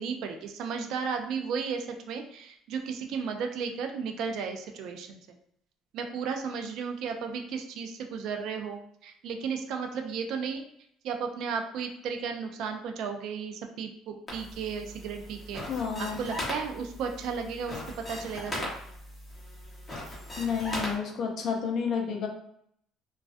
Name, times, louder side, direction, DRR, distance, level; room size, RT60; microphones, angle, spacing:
voice 1, 0.0-5.2 5.9-10.7 11.0-15.6 16.0-17.8 18.1-18.7, right 6 dB, 65° right, 5 dB, 0.3 m, -34 dB
sound 1, 14.3-20.9, left 1 dB, 15° left, 0.8 m, -39 dB
voice 2, 15.7-16.2 20.4-22.3, left 6 dB, 50° left, 1 dB, 0.5 m, -30 dB
2.3 x 2.2 x 2.4 m, 0.70 s
cardioid pair, 135°, 0 cm